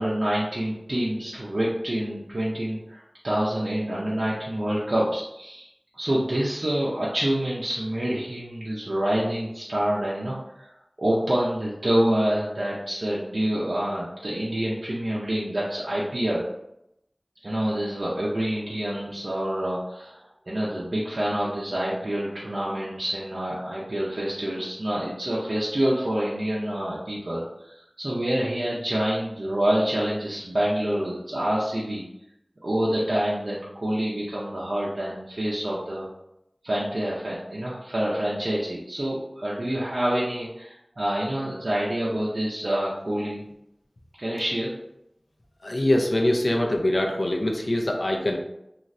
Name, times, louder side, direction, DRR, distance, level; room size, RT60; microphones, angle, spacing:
voice 1, 0.0-5.7 5.9-10.7 11.0-16.4 17.4-32.0 32.6-36.1 36.6-43.4 44.2-44.7, right 1 dB, 80° right, -7 dB, 0.5 m, -27 dB
voice 2, 45.6-48.4, left 1 dB, 70° left, 1 dB, 0.5 m, -23 dB
3.1 x 2.4 x 2.5 m, 0.82 s
wide cardioid pair, 45°, 0 cm